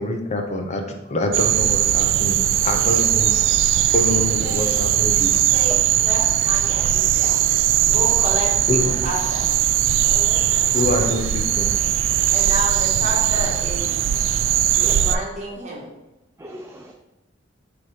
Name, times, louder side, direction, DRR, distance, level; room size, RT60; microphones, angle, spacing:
voice 1, 0.0-2.4 2.6-3.3 3.9-5.3 8.7-8.9 10.7-11.7, left 1 dB, 40° left, 3 dB, 0.7 m, -25 dB
sound 1, 1.3-15.2, right 11 dB, 85° right, 0.3 m, -19 dB
voice 2, 4.4-4.7 5.3-7.4 7.9-8.5 8.8-9.5 12.3-13.9 14.7-15.9, right 1 dB, 40° right, -2 dB, 1.5 m, -30 dB
voice 3, 10.0-10.7 14.8-15.1 16.4-16.9, equal, 15° right, 2 dB, 0.4 m, -38 dB
6.5 x 3.0 x 5.1 m, 1.0 s
head